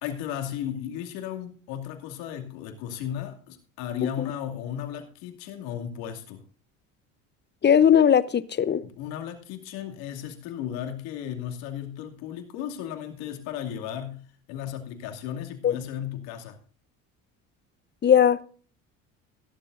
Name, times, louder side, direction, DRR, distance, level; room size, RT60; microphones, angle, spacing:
voice 1, 0.0-6.4 8.8-16.6, left 10 dB, 80° left, 4 dB, 2.6 m, -35 dB
voice 2, 7.6-8.8 15.6-15.8 18.0-18.4, left 8 dB, 30° left, 17 dB, 0.8 m, -19 dB
15.5 x 12.0 x 2.6 m, 0.43 s
supercardioid pair, 80°, 36 cm